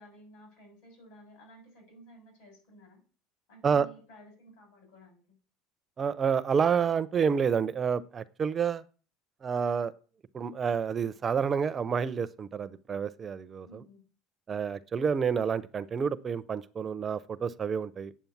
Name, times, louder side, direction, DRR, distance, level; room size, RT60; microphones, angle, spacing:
voice 1, 0.0-3.0 3.5-5.2 13.6-14.0, right 1 dB, 70° left, 3 dB, 6.8 m, -54 dB
voice 2, 6.0-8.8 9.4-9.9 10.3-13.8 14.5-18.1, right 6 dB, 20° right, 14 dB, 0.4 m, -29 dB
9.1 x 7.4 x 7.1 m, 0.39 s
cardioid pair, 175°, 0 cm